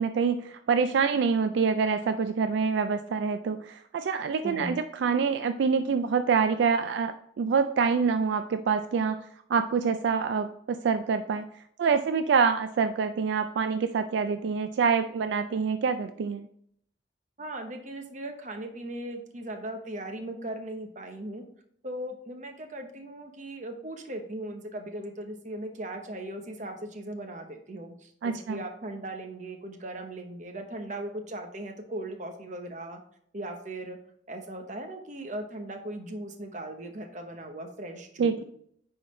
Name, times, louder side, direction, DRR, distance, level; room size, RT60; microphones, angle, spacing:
voice 1, 0.0-11.5 11.8-16.5 28.2-28.6 38.2-38.4, right 5 dB, 75° right, 9 dB, 0.3 m, -26 dB
voice 2, 4.4-4.8 17.4-21.4 21.8-33.0 33.3-34.0 34.3-38.4, right 1 dB, 40° right, 5 dB, 0.9 m, -38 dB
9.3 x 3.9 x 3.1 m, 0.67 s
head